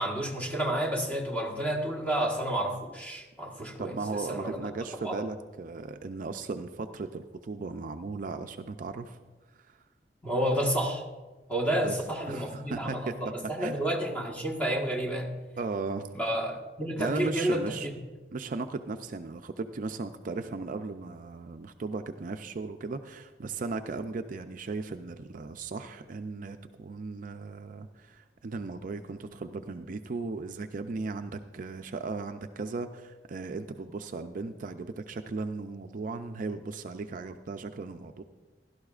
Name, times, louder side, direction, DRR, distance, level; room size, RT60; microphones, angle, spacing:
voice 1, 0.0-3.9 4.3-4.6 5.0-5.2 10.2-11.0 11.5-15.3 16.2-17.6, right 1 dB, 10° left, -1 dB, 1.4 m, -30 dB
voice 2, 3.8-9.2 9.5-9.8 11.8-11.9 12.3-13.1 13.6-13.8 15.6-16.1 17.0-17.9 18.3-38.2, right 3 dB, 50° right, 8 dB, 0.4 m, -36 dB
16.5 x 12.0 x 2.4 m, 1.2 s
head